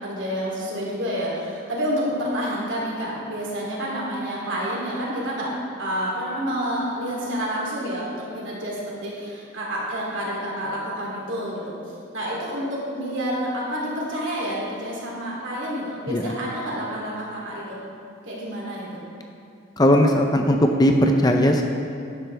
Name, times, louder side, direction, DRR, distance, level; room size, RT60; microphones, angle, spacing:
voice 1, 0.0-11.8 12.1-17.8 18.2-19.0, equal, 65° right, -4 dB, 3.0 m, -29 dB
voice 2, 19.8-21.6, equal, 20° left, 3 dB, 0.6 m, -18 dB
13.5 x 10.5 x 3.4 m, 2.5 s
head